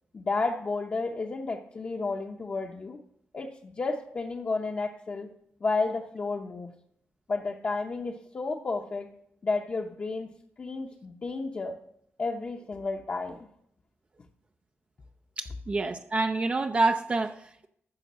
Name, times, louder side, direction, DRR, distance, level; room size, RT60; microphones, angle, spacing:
voice 1, 0.1-3.0 3.3-5.3 5.6-6.7 7.3-9.1 9.4-11.8 12.2-13.5, left 3 dB, 35° left, 1 dB, 0.8 m, -32 dB
voice 2, 15.4-17.7, right 3 dB, 25° right, 6 dB, 0.5 m, -27 dB
13.5 x 6.4 x 6.2 m, 0.72 s
wide cardioid pair, 155°, 5 cm